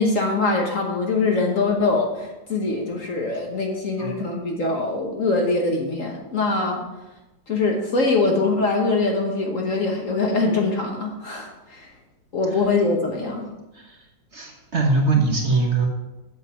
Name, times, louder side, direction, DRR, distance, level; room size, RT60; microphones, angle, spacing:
voice 1, 0.0-6.8 7.5-11.9 12.3-13.5, left 3 dB, 50° left, 1 dB, 1.3 m, -23 dB
voice 2, 14.3-15.9, right 3 dB, 40° right, 1 dB, 1.4 m, -22 dB
7.9 x 7.1 x 5.7 m, 1.0 s
omnidirectional pair, 2.0 m